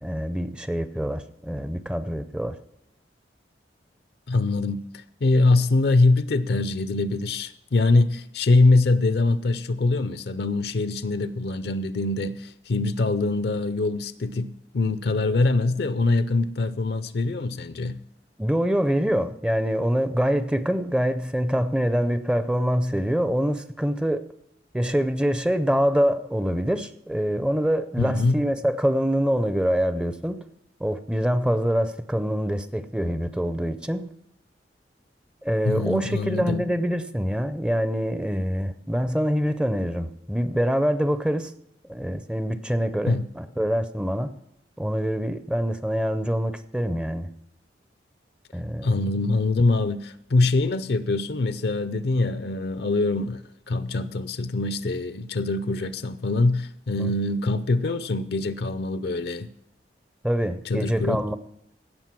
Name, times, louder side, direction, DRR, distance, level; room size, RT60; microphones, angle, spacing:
voice 1, 0.0-2.6 18.4-24.2 24.7-30.4 30.8-34.1 35.4-41.5 41.9-44.3 44.8-47.3 48.5-49.1 57.0-57.1 60.2-61.4, equal, 5° right, 11 dB, 0.5 m, -25 dB
voice 2, 4.3-4.8 5.2-18.0 28.0-28.3 35.6-36.6 43.1-43.2 48.8-59.5 60.7-61.2, left 2 dB, 65° left, 13 dB, 0.5 m, -23 dB
16.5 x 6.4 x 6.0 m, 0.80 s
head